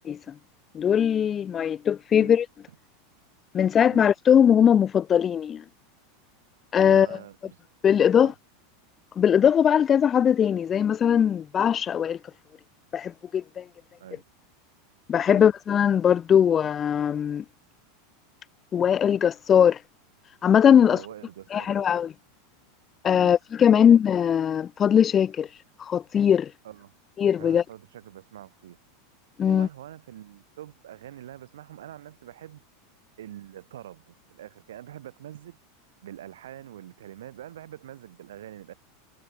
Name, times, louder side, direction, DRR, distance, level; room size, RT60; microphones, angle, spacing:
voice 1, 0.7-2.5 3.5-5.6 6.7-7.2 7.8-8.3 9.2-12.2 12.9-13.6 15.1-17.4 18.7-19.8 20.4-21.0 21.5-22.1 23.0-25.5 25.8-26.5 27.2-27.6 29.4-29.7, left 8 dB, 30° left, 0.5 m, -20 dB
voice 2, 6.8-7.6 8.1-8.3 14.0-14.2 15.3-15.5 20.8-21.9 23.1-23.3 23.7-23.8 26.6-26.9 27.4-28.8 29.4-32.6 33.2-35.6 36.0-38.7, right 12 dB, 70° right, 3.9 m, -44 dB
figure-of-eight pair, 85°, 0 cm